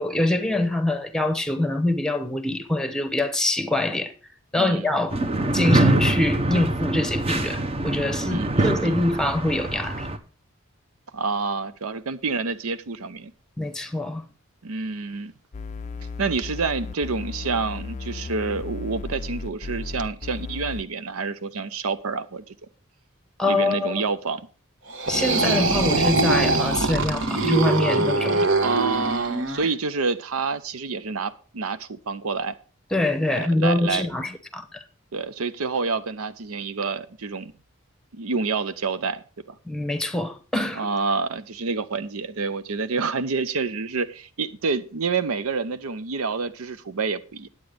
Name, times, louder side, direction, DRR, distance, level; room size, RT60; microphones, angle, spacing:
voice 1, 0.0-4.1 4.5-5.2 5.5-10.1 13.6-14.2 23.4-24.0 25.1-28.5 32.9-34.8 39.6-40.9, left 2 dB, 5° left, 0.9 m, -24 dB
voice 2, 4.5-4.9 8.3-9.0 11.1-13.3 14.6-15.3 16.2-22.5 23.4-24.4 28.6-32.5 33.3-34.1 35.1-37.5 38.1-39.5 40.8-47.5, right 4 dB, 85° right, 0.7 m, -28 dB
sound 1, 5.1-10.2, right 1 dB, 30° right, 0.8 m, -24 dB
sound 2, 15.5-20.8, left 4 dB, 35° left, 0.4 m, -35 dB
sound 3, 24.9-29.7, right 3 dB, 60° right, 1.2 m, -23 dB
9.6 x 8.5 x 5.0 m
head